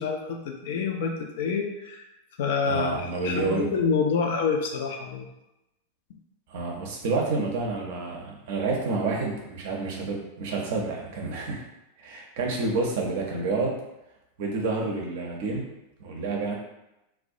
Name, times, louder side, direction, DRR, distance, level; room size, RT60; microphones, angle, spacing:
voice 1, 0.0-2.0 2.4-5.3, left 5 dB, 55° left, 3 dB, 0.3 m, -27 dB
voice 2, 2.6-3.7 6.5-11.6 12.0-13.7 14.4-15.7 16.0-16.6, right 3 dB, 50° right, 0 dB, 0.5 m, -29 dB
2.3 x 2.1 x 2.6 m, 0.90 s
figure-of-eight pair, 90°, 0 cm